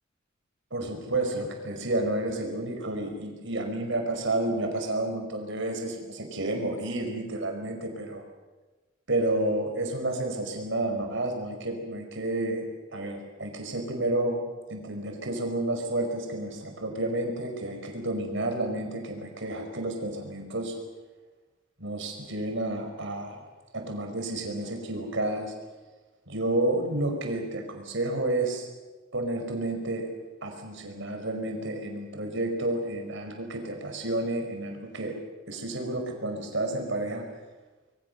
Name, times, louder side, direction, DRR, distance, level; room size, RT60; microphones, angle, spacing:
voice 1, 0.7-8.3 9.1-12.7 12.9-14.4 14.7-20.7 21.8-23.4 23.7-25.5 26.3-28.7 29.1-30.1 30.4-35.2 35.5-37.3, right 2 dB, 65° right, 4 dB, 5.1 m, -30 dB
25.5 x 23.0 x 6.8 m, 1.2 s
head